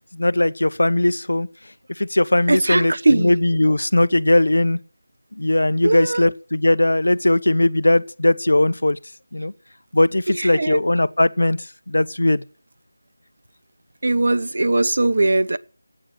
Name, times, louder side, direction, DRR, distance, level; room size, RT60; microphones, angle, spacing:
voice 1, 0.1-1.5 2.0-4.8 5.4-9.0 9.3-9.5 9.9-12.4, left 1 dB, 85° left, 0.9 m, -19 dB
voice 2, 2.5-3.3 5.8-6.2 10.4-10.8 14.0-15.6, right 2 dB, 55° right, 0.9 m, -19 dB
17.5 x 8.8 x 7.7 m
figure-of-eight pair, 175°, 0 cm